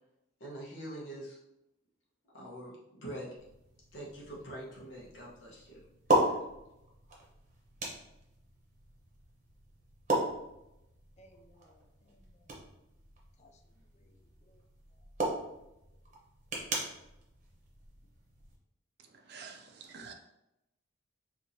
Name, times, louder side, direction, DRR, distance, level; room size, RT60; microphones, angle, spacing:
voice 1, 0.4-1.4 2.3-3.3 3.9-5.8 6.1-6.4, right 1 dB, 70° left, -5 dB, 1.2 m, -44 dB
sound 1, 3.4-18.6, right 1 dB, 35° right, 0.9 m, -37 dB
voice 2, 11.2-12.6 13.4-14.6 14.9-15.0, equal, 35° left, 5 dB, 0.4 m, -64 dB
voice 3, 19.1-20.1, right 5 dB, 55° right, 3 dB, 0.5 m, -48 dB
4.6 x 2.8 x 2.7 m, 0.89 s
head